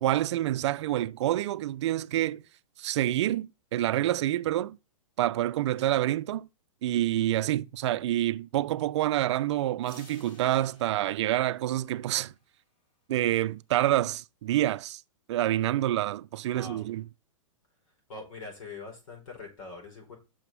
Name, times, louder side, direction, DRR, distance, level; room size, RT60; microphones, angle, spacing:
voice 1, 0.0-2.4 2.8-4.8 5.2-6.5 6.8-12.3 13.1-15.0 15.3-17.0, right 13 dB, 55° right, 0.4 m, -27 dB
sound 1, 9.8-12.6, left 2 dB, 30° left, 2.8 m, -56 dB
voice 2, 16.5-16.9 18.1-20.2, left 3 dB, 80° left, 4.5 m, -43 dB
6.1 x 4.8 x 6.0 m
hypercardioid pair, 135°, 17 cm